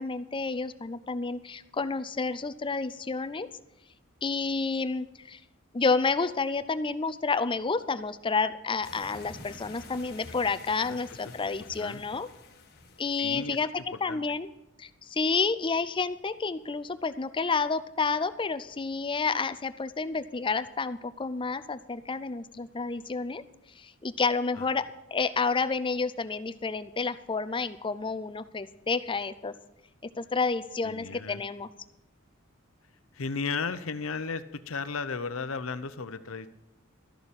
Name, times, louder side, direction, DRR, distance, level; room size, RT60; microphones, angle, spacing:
voice 1, 0.0-3.5 4.2-5.4 5.7-12.3 13.0-13.7 14.0-14.5 14.8-23.4 23.8-24.9 25.1-29.5 30.2-31.7, left 4 dB, 25° left, 14 dB, 0.5 m, -30 dB
sound 1, 8.8-13.6, left 3 dB, 50° left, 1.4 m, -49 dB
voice 2, 13.2-13.6 13.9-14.2 24.6-24.7 30.8-31.4 33.1-36.5, left 4 dB, 70° left, 12 dB, 0.7 m, -34 dB
13.0 x 6.9 x 8.7 m, 0.94 s
head